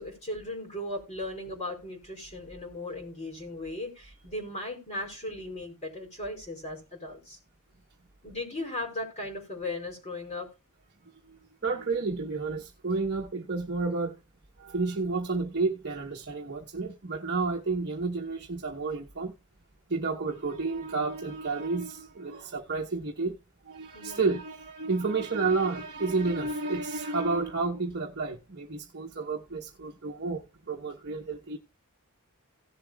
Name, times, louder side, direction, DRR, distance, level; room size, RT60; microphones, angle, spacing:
voice 1, 0.0-7.4 8.2-10.5 23.9-24.2, left 1 dB, 30° left, 4.8 m, -37 dB
voice 2, 11.6-14.2 14.6-19.3 19.9-23.4 23.7-31.6, right 3 dB, 50° right, 1.0 m, -31 dB
17.5 x 7.5 x 2.3 m
head